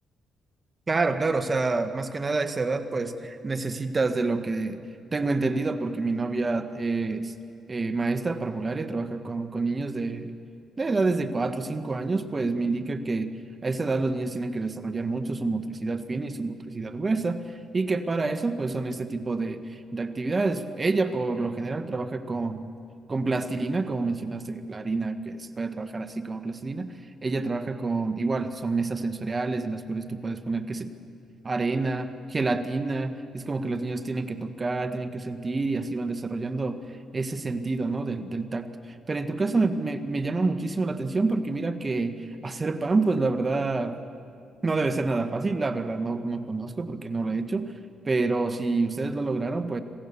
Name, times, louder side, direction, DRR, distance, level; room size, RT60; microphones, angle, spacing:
voice 1, 0.9-4.8 5.1-7.3 7.7-10.3 10.8-13.3 13.6-17.4 17.7-22.6 23.1-26.9 27.2-30.9 31.4-36.8 37.1-38.7 39.1-42.2 42.4-44.0 44.6-47.7 48.0-49.8, right 3 dB, 30° right, 8 dB, 1.5 m, -28 dB
27.0 x 15.5 x 7.0 m, 2.5 s
cardioid pair, 90°, 0 cm